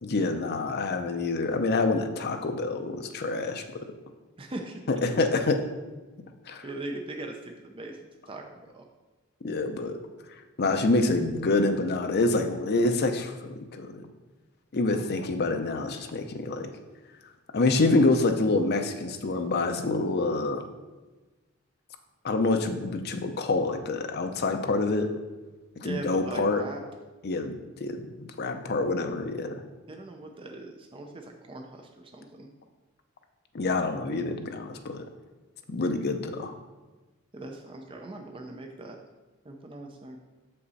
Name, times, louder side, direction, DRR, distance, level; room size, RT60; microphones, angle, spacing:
voice 1, 0.0-3.6 4.9-5.6 6.5-6.6 9.4-10.0 10.6-14.0 14.7-16.7 17.5-20.6 22.2-25.1 25.8-26.6 27.2-27.5 27.8-29.5 33.5-35.0 35.7-36.6, left 3 dB, 50° left, 6 dB, 0.6 m, -26 dB
voice 2, 4.4-4.8 5.1-5.3 6.6-8.0 8.3-8.4 8.7-8.9 14.9-15.0 15.9-16.1 25.8-26.8 29.9-32.5 37.3-39.0 39.4-40.2, right 2 dB, 25° right, 3 dB, 0.5 m, -40 dB
6.6 x 5.5 x 4.1 m, 1.2 s
head